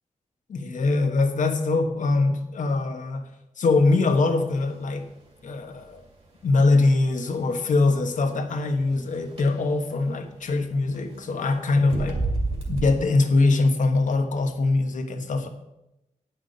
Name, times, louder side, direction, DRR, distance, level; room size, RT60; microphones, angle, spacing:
voice 1, 0.5-3.2 3.6-5.0 5.4-6.0 6.4-12.2 12.7-15.5, left 3 dB, 75° left, 6 dB, 1.2 m, -22 dB
sound 1, 4.4-12.9, right 2 dB, 50° right, 2.5 m, -34 dB
9.5 x 6.0 x 6.8 m, 0.90 s
wide cardioid pair, 160°, 13 cm